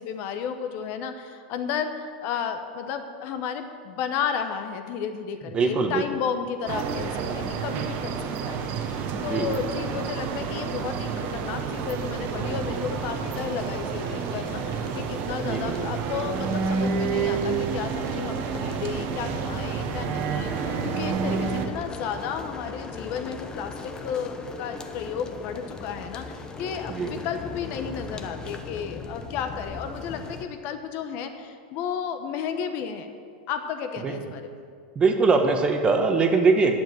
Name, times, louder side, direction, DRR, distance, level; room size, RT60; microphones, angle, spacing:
voice 1, 0.0-33.1 33.5-34.4, left 7 dB, 45° left, 8 dB, 1.0 m, -33 dB
voice 2, 5.5-6.0 9.1-9.5 15.4-15.8 21.2-21.5 26.9-27.1 34.0-34.2 34.9-36.8, right 4 dB, 20° right, 5 dB, 1.1 m, -22 dB
sound 1, 6.7-21.7, right 6 dB, 40° right, 1.1 m, -29 dB
sound 2, 12.3-30.4, left 3 dB, 15° left, 0.8 m, -39 dB
11.0 x 7.3 x 7.7 m, 2.1 s
supercardioid pair, 140°, 5 cm